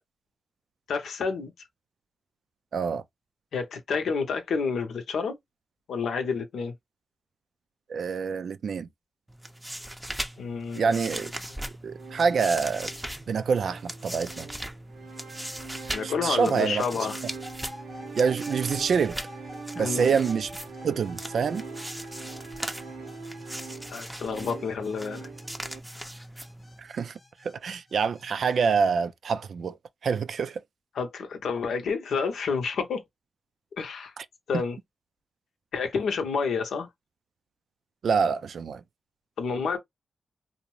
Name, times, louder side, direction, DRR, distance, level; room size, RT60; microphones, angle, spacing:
voice 1, 0.9-1.5 3.5-5.4 5.9-6.7 10.4-11.0 15.9-17.2 19.8-20.1 23.9-25.3 30.9-33.0 33.8-34.1 34.5-34.8 35.7-36.9 39.4-39.8, left 5 dB, 80° left, 0.6 m, -29 dB
voice 2, 2.7-3.0 7.9-8.9 10.8-11.3 11.8-12.9 13.3-14.5 16.0-16.8 18.2-19.2 19.8-20.5 20.8-21.6 26.8-29.8 30.0-30.6 34.2-34.3 34.5-34.6 38.0-38.8, right 6 dB, 70° right, 0.3 m, -26 dB
sound 1, 9.3-26.9, right 1 dB, 10° right, 0.5 m, -39 dB
sound 2, 11.9-25.8, right 4 dB, 90° right, 0.7 m, -43 dB
sound 3, 17.4-28.6, left 1 dB, 25° left, 0.8 m, -49 dB
2.6 x 2.0 x 3.0 m
cardioid pair, 55°, 0 cm